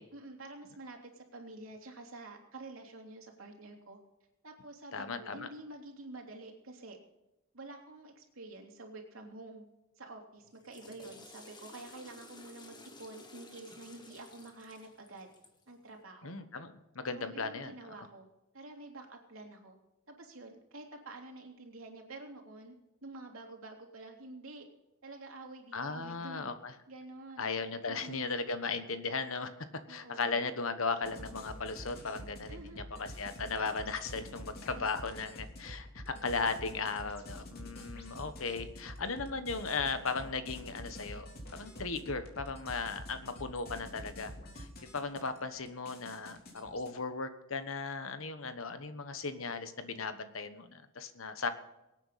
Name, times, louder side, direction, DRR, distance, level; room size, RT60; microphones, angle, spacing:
voice 1, 0.1-4.0 4.4-7.0 7.5-9.6 10.0-15.3 15.7-16.3 17.1-18.3 18.5-19.8 20.1-22.7 23.0-24.7 25.0-26.5 26.9-27.5 27.9-28.3 29.9-30.4 32.5-32.9 34.7-34.9 35.2-35.3, right 2 dB, 70° right, 1 dB, 3.2 m, -48 dB
voice 2, 4.9-5.5 16.2-17.9 25.7-26.7 27.4-29.5 29.9-51.5, left 4 dB, 70° left, 10 dB, 1.3 m, -37 dB
Water / Toilet flush, 10.4-15.7, left 2 dB, 20° left, 1.8 m, -54 dB
sound 1, 31.0-46.9, equal, 50° left, 3.2 m, -47 dB
23.5 x 9.0 x 4.2 m, 0.94 s
head